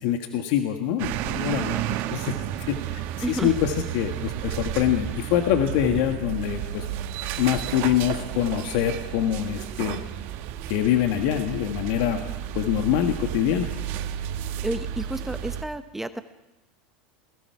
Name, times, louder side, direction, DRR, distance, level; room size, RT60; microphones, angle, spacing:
voice 1, 0.0-6.8 7.4-10.0 10.7-12.2 12.5-13.7, left 10 dB, 65° left, 5 dB, 1.7 m, -25 dB
sound 1, 1.0-15.6, right 11 dB, 55° right, 1.3 m, -32 dB
voice 2, 3.2-3.5 14.6-16.2, right 1 dB, 5° right, 10 dB, 1.0 m, -31 dB
27.5 x 19.5 x 4.8 m, 0.98 s
supercardioid pair, 110°, 5 cm